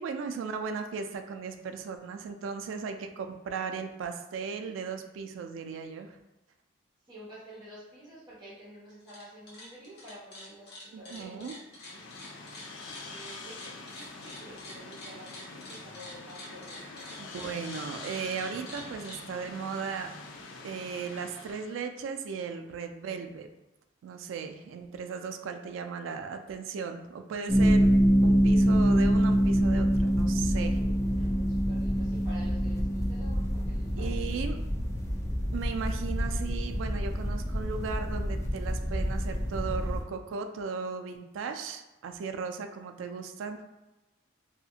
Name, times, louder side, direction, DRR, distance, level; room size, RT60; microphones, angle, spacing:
voice 1, 0.0-6.2 10.9-11.6 17.2-20.1 20.6-23.5 24.0-27.9 28.2-30.8 34.0-34.6 35.5-43.6, right 5 dB, 90° right, 7 dB, 0.3 m, -36 dB
voice 2, 7.1-12.1 13.0-17.2 30.7-34.5, equal, 25° right, -10 dB, 1.1 m, -50 dB
sound 1, 8.9-9.2 9.5-19.2, left 1 dB, 60° left, 0.9 m, -46 dB
sound 2, 11.7-21.8, left 3 dB, 85° left, 0.4 m, -45 dB
sound 3, 27.5-40.0, equal, 15° left, 0.4 m, -26 dB
2.7 x 2.4 x 2.7 m, 1.0 s
head